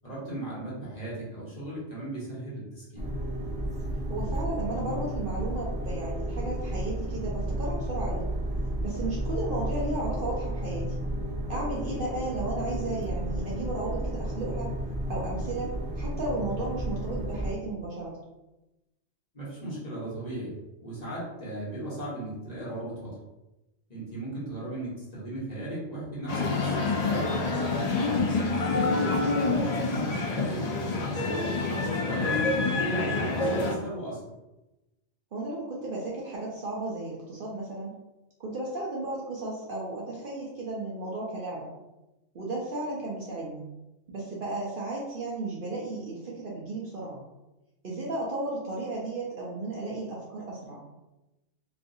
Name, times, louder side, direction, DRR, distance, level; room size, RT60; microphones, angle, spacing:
voice 1, 0.0-3.1 19.3-20.5 20.8-23.1 23.9-27.3 27.6-28.3 28.8-31.4 31.9-34.2, right 1 dB, 35° left, -8 dB, 1.2 m, -36 dB
sound 1, 3.0-17.5, right 1 dB, 10° right, 0.4 m, -32 dB
voice 2, 4.1-8.3 8.8-11.0 11.5-14.7 15.1-18.1 28.9-29.2 35.3-37.9 38.4-41.7 42.3-43.6 44.1-47.2 47.8-50.8, right 2 dB, 55° right, -4 dB, 0.7 m, -34 dB
sound 2, 26.3-33.8, left 3 dB, 90° left, 0.3 m, -27 dB
3.3 x 2.5 x 2.6 m, 0.98 s
omnidirectional pair, 1.2 m